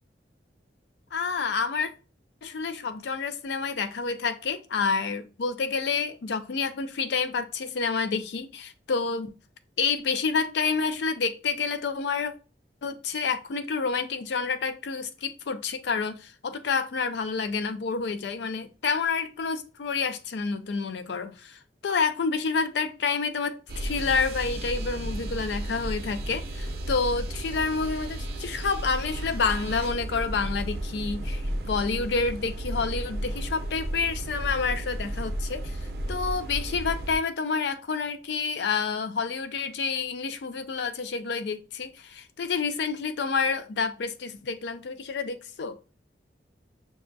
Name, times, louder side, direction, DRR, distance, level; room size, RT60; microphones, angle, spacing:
voice 1, 1.1-1.9 2.4-9.3 9.8-12.3 12.8-45.8, left 5 dB, 75° left, 0.4 m, -29 dB
sound 1, 23.7-37.2, right 1 dB, 60° right, 0.5 m, -33 dB
5.9 x 2.6 x 2.2 m
head